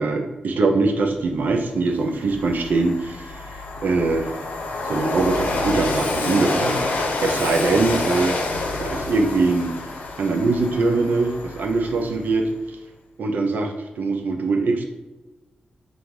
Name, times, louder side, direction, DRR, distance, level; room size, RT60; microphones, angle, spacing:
voice 1, 0.0-3.4 3.8-4.3 4.8-6.9 7.2-8.4 8.8-9.7 10.2-12.5 13.2-14.8, right 3 dB, 75° right, 4 dB, 0.5 m, -22 dB
Train, 1.4-1.5 1.9-12.3, left 2 dB, 80° left, 0.6 m, -28 dB
3.6 x 2.5 x 4.5 m, 1.1 s
cardioid pair, 55°, 3 cm